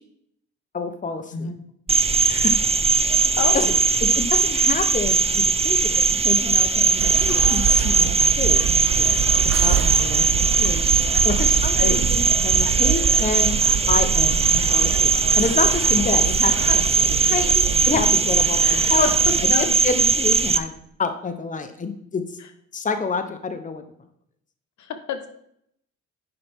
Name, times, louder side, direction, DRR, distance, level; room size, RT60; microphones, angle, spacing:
voice 1, 0.7-1.5 2.2-2.6 3.5-3.7 4.0-9.1 9.4-10.8 11.2-13.6 13.9-19.1 19.4-20.7 21.0-22.2 22.7-23.8, left 4 dB, 25° left, 8 dB, 0.9 m, -28 dB
Cricket, 1.9-20.6, right 4 dB, 20° right, 0.6 m, -19 dB
voice 2, 3.4-3.7 11.8-12.0 18.6-19.7 25.1-25.3, left 6 dB, 70° left, 7 dB, 1.2 m, -28 dB
sound 1, 7.0-19.4, right 9 dB, 55° right, 0.7 m, -27 dB
10.5 x 5.6 x 3.6 m, 0.70 s
cardioid pair, 90°, 30 cm